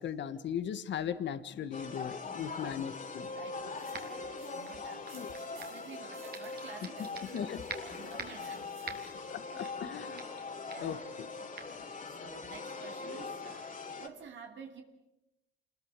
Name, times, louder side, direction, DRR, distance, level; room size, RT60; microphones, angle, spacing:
voice 1, 0.0-3.3 5.1-5.3 7.3-7.6 9.3-10.2 10.8-11.0, left 8 dB, 65° left, 12 dB, 1.5 m, -37 dB
sound 1, 1.7-14.1, left 4 dB, 40° left, 3.1 m, -42 dB
voice 2, 2.2-3.0 3.3-9.0 9.5-9.8 10.6-11.1 11.4-11.6 12.0-14.8, right 6 dB, 70° right, 3 dB, 2.8 m, -51 dB
sound 2, 3.8-9.3, right 8 dB, 90° right, 4.2 m, -60 dB
sound 3, 3.9-4.3 4.6-5.8 6.3-7.4 7.7-8.5 8.9-9.2 9.6-9.9 10.2-10.4 10.7-10.9 11.6-11.7, right 6 dB, 50° right, 3.3 m, -45 dB
27.5 x 20.5 x 8.2 m, 0.95 s
cardioid pair, 90°, 20 cm